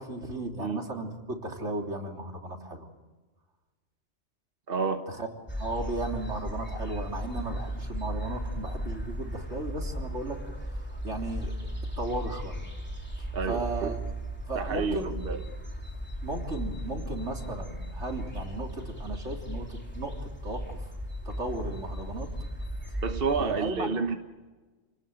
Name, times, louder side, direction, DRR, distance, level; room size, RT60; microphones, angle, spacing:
voice 1, 0.0-2.9 5.1-5.3 5.6-10.4 11.0-11.5 12.0-12.6 13.5-14.0 14.5-15.1 16.2-20.8 21.3-22.3 23.4-23.9, right 2 dB, 80° right, 2 dB, 3.7 m, -35 dB
voice 2, 4.7-5.1 13.3-13.9 14.5-15.4 23.0-24.2, right 5 dB, 55° right, 6 dB, 1.4 m, -30 dB
sound 1, 5.5-23.4, equal, 10° left, 3.3 m, -36 dB
30.0 x 19.5 x 8.9 m, 1.3 s
omnidirectional pair, 1.2 m